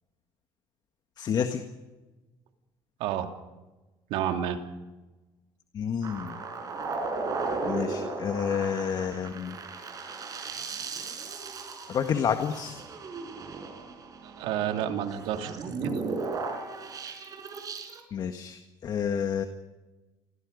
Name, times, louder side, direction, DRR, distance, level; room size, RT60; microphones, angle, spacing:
voice 1, 1.2-1.6 5.7-6.4 7.6-9.6 11.9-12.8 18.1-19.4, left 7 dB, 45° left, 7 dB, 1.7 m, -29 dB
voice 2, 4.1-4.6 14.2-15.9, right 10 dB, 80° right, 5 dB, 2.7 m, -30 dB
sound 1, 6.0-18.0, right 4 dB, 40° right, 5.3 m, -36 dB
28.0 x 22.0 x 5.3 m, 1.2 s
cardioid pair, 120°, 9 cm